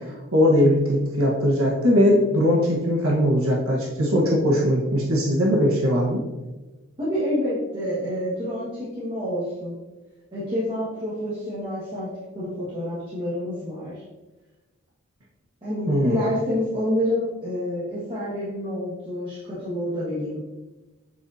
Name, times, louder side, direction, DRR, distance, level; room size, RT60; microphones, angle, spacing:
voice 1, 0.3-6.2 15.9-16.2, equal, 85° right, -3 dB, 1.3 m, -20 dB
voice 2, 7.0-9.8 10.3-12.1 12.3-14.0 15.6-20.4, equal, 25° right, -11 dB, 1.6 m, -28 dB
7.9 x 4.8 x 2.7 m, 1.1 s
head